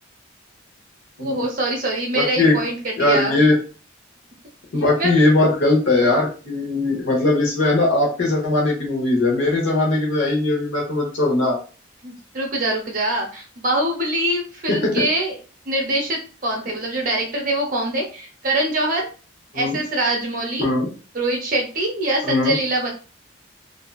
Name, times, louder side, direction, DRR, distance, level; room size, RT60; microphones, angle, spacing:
voice 1, 1.2-3.4 5.0-5.2 12.0-15.4 15.7-19.1 19.5-20.7 21.1-22.9, right 1 dB, 45° right, 1 dB, 0.7 m, -24 dB
voice 2, 2.1-2.6 3.0-3.5 4.7-11.6 14.7-15.0 19.5-19.8 20.6-20.9 22.2-22.5, left 2 dB, 80° left, -2 dB, 0.9 m, -19 dB
2.6 x 2.3 x 2.3 m, 0.36 s
head